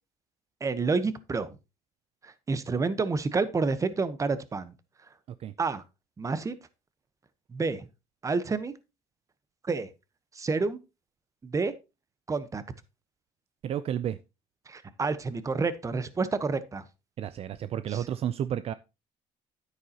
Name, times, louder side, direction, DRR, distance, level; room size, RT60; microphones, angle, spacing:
voice 1, 0.6-1.6 2.2-4.7 5.6-5.8 6.2-6.5 7.5-7.9 8.2-8.7 9.6-9.9 10.3-10.8 11.4-11.7 12.3-12.6 14.7-16.8 17.9-18.0, right 4 dB, 25° right, 1.0 m, -29 dB
voice 2, 13.6-14.2 17.2-18.7, right 10 dB, 50° right, 0.5 m, -31 dB
9.7 x 9.3 x 2.9 m
cardioid pair, 110°, 13 cm